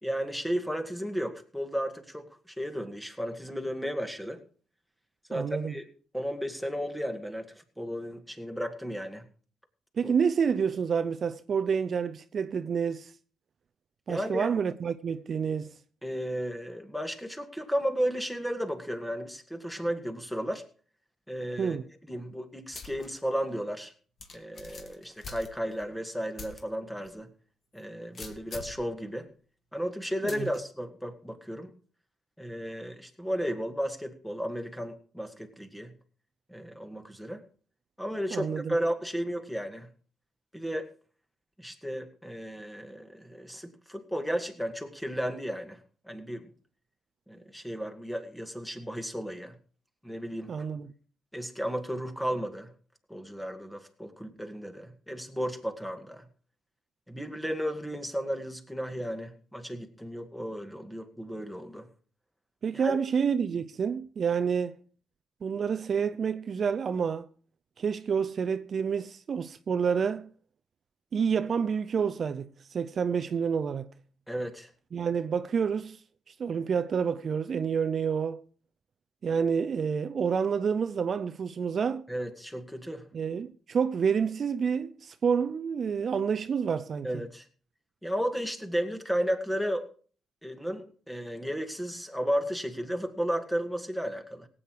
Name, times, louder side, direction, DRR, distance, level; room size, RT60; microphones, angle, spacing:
voice 1, 0.0-2.3 2.6-4.4 5.3-5.8 6.1-9.3 10.0-10.1 14.1-14.5 16.0-20.6 21.3-21.8 22.1-23.9 24.3-27.3 27.7-29.3 29.7-31.7 32.4-35.9 36.5-37.4 38.0-39.9 40.5-40.9 41.6-45.8 46.1-46.5 47.3-49.5 50.0-50.6 51.3-52.7 53.1-56.3 57.1-61.9 62.7-63.0 74.3-74.7 82.1-83.1 87.0-87.5 88.0-89.8 90.4-94.5, equal, 5° left, 2.0 m, -34 dB
voice 2, 5.3-5.7 10.0-13.1 14.1-15.7 21.6-21.9 30.2-30.5 38.3-38.7 50.5-50.9 62.6-64.7 65.4-67.3 67.8-70.3 71.1-73.9 74.9-76.0 76.3-78.4 79.2-82.0 83.1-87.1, right 6 dB, 50° right, 0.6 m, -28 dB
sound 1, 22.7-23.1 23.5-23.6 24.2-25.9 26.4-26.6 27.0-27.1 28.1-28.8 30.3-30.6, left 4 dB, 45° left, 2.3 m, -44 dB
17.0 x 8.6 x 4.7 m
cardioid pair, 90°, 0 cm